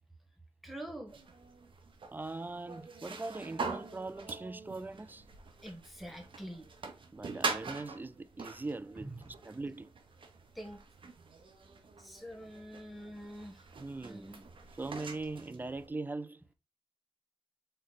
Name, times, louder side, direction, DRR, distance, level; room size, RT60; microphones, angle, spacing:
voice 1, 0.6-1.1 5.6-6.7 9.0-9.3 10.5-10.8 12.0-13.6 14.0-14.4, equal, ahead, 1.3 m, -45 dB
sound 1, 1.1-15.9, right 4 dB, 60° right, 0.9 m, -44 dB
voice 2, 2.1-5.3 7.1-9.1 9.4-9.9 13.8-14.5 14.8-16.5, right 3 dB, 20° right, 0.3 m, -41 dB
3.8 x 3.3 x 4.0 m
cardioid pair, 65°, 10 cm